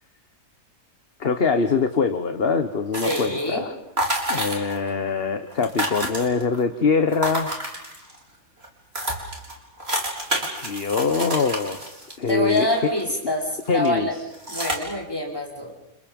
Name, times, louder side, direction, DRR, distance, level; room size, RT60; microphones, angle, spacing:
voice 1, 1.2-3.7 4.3-7.6 10.6-12.9 13.7-14.1, left 5 dB, 40° left, 8 dB, 1.5 m, -23 dB
sound 1, 2.9-3.5 4.0-4.9 5.2-5.3 5.5-6.6 7.1-8.2 8.6-8.7 8.9-13.2 13.6-13.9 14.3-14.8, right 1 dB, 40° right, 4.7 m, -29 dB
voice 2, 3.0-3.7 12.3-14.2 14.5-15.7, left 1 dB, 15° left, -1 dB, 5.1 m, -25 dB
30.0 x 30.0 x 5.5 m, 0.88 s
omnidirectional pair, 1.6 m